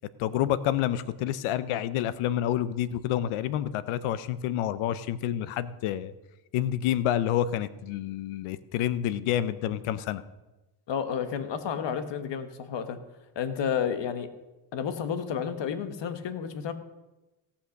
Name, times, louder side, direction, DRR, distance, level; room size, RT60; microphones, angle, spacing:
voice 1, 0.2-6.1 6.5-10.2, left 11 dB, 85° left, 16 dB, 0.8 m, -28 dB
voice 2, 10.9-13.0 13.3-14.3 14.7-16.7, left 7 dB, 60° left, 10 dB, 1.3 m, -31 dB
17.0 x 5.8 x 6.4 m, 1.1 s
cardioid pair, 80°, 48 cm